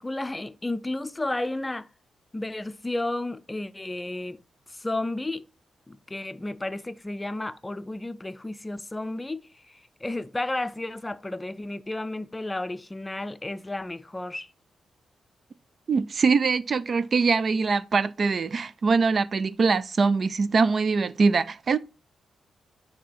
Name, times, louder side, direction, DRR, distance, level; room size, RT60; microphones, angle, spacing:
voice 1, 0.0-1.9 2.3-4.4 4.7-5.4 5.9-9.4 9.7-14.5, left 2 dB, 20° left, 0.5 m, -32 dB
voice 2, 15.9-21.8, right 4 dB, 55° right, 0.4 m, -23 dB
6.6 x 2.9 x 5.7 m
supercardioid pair, 50°, 0 cm